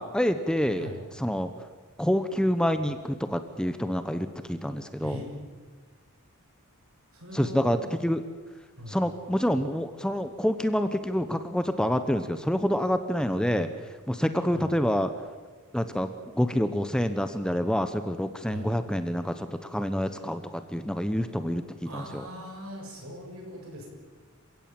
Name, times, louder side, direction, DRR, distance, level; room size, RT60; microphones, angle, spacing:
voice 1, 0.0-1.5 2.0-5.2 7.3-8.2 8.9-13.7 14.1-15.1 15.7-16.1 16.3-22.3, equal, 5° left, 9 dB, 0.9 m, -27 dB
voice 2, 7.1-7.8 8.8-9.0 13.6-13.7 14.5-14.7 18.5-18.7 21.8-23.9, equal, 75° right, 1 dB, 7.1 m, -40 dB
27.5 x 16.0 x 8.9 m, 1.4 s
head